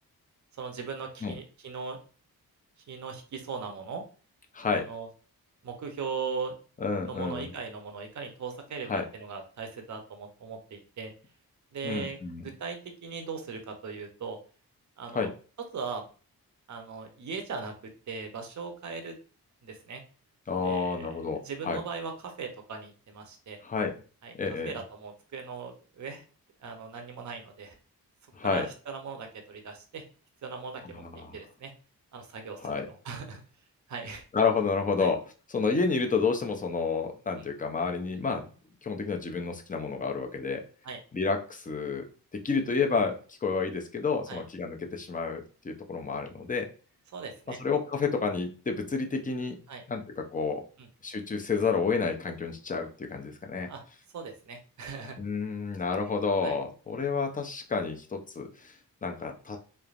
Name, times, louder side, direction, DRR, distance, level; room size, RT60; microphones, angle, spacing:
voice 1, 0.6-2.0 2.9-4.0 4.7-5.1 5.6-6.5 7.1-11.1 11.7-14.4 15.0-15.3 15.7-16.0 16.7-17.7 18.1-19.1 19.6-20.0 20.6-23.6 24.2-24.3 24.6-26.2 26.6-27.8 28.4-30.0 30.4-31.7 32.1-32.7 33.0-33.4 33.9-34.2 35.0-35.1 38.1-38.2 40.8-41.0 44.3-44.4 47.1-47.6 49.7-49.8 50.8-50.9 53.7-53.8 54.1-55.2 56.4-56.5, right 5 dB, 50° right, 4 dB, 0.7 m, -39 dB
voice 2, 4.5-4.8 6.8-7.5 8.9-9.0 11.8-12.5 15.1-15.3 20.5-21.8 23.6-23.9 24.4-24.7 28.3-28.7 30.8-31.4 32.6-32.9 34.3-35.2 35.5-38.5 38.8-40.6 41.1-42.0 42.3-46.7 47.5-49.6 49.9-50.6 51.0-53.7 55.2-58.8 59.0-59.6, left 4 dB, 20° left, 3 dB, 0.6 m, -30 dB
3.2 x 2.0 x 2.4 m, 0.38 s
cardioid pair, 55°, 37 cm